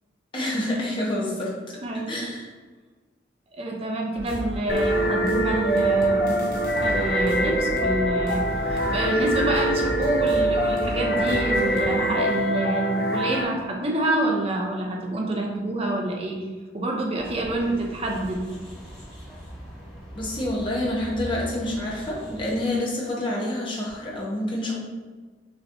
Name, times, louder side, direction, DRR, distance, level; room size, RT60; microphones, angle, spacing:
voice 1, 0.3-1.5 2.1-2.5 20.1-24.8, left 1 dB, 25° left, -4 dB, 1.0 m, -27 dB
voice 2, 1.8-2.3 3.5-6.4 6.8-16.4 16.7-18.5, right 1 dB, 30° right, 0 dB, 0.6 m, -27 dB
sound 1, 4.2-11.8, equal, 50° right, 1.1 m, -34 dB
sound 2, 4.7-13.4, right 1 dB, 55° left, 0.5 m, -24 dB
sound 3, 17.1-22.6, equal, ahead, 1.3 m, -40 dB
6.3 x 3.0 x 2.6 m, 1.4 s
head